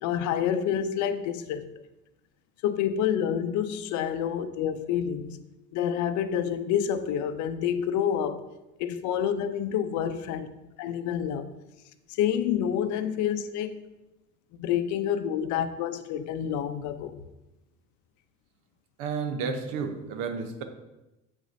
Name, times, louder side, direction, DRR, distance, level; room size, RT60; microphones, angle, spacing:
voice 1, 0.0-1.6 2.6-5.4 5.7-8.4 8.8-10.5 10.8-11.4 12.1-13.8 14.5-17.2, left 9 dB, 55° left, 0.6 m, -28 dB
voice 2, 19.0-20.6, right 5 dB, 70° right, 0.9 m, -31 dB
7.7 x 4.9 x 2.6 m
supercardioid pair, 85°, 34 cm